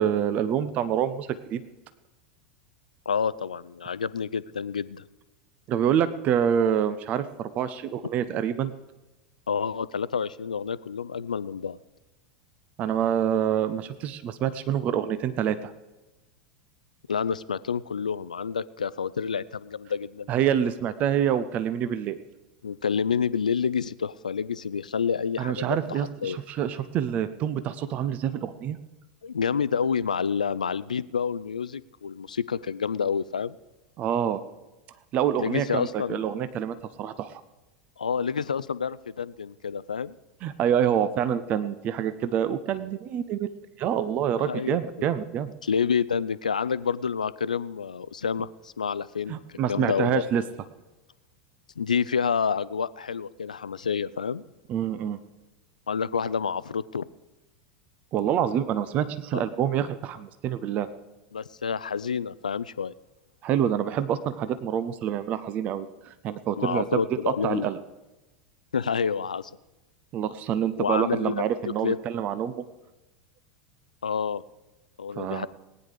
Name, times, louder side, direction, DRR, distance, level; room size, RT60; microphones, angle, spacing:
voice 1, 0.0-1.6 5.7-8.7 12.8-15.7 20.3-22.2 25.4-28.8 34.0-34.4 35.1-37.4 40.4-43.5 43.8-45.5 49.3-50.4 54.7-55.2 58.1-60.9 63.4-67.0 67.3-67.8 70.1-72.6 75.2-75.5, right 9 dB, 35° right, 13 dB, 0.8 m, -26 dB
voice 2, 3.1-5.0 9.5-11.8 17.1-20.3 22.6-26.4 29.2-33.6 35.4-36.2 38.0-40.1 44.4-44.8 45.6-50.2 51.8-54.4 55.9-57.1 59.3-59.4 61.3-62.9 66.6-67.7 68.7-69.5 70.8-71.4 71.8-72.0 74.0-74.4 75.0-75.5, left 6 dB, 75° left, 18 dB, 0.4 m, -28 dB
18.0 x 9.9 x 4.9 m, 1.1 s
figure-of-eight pair, 85°, 4 cm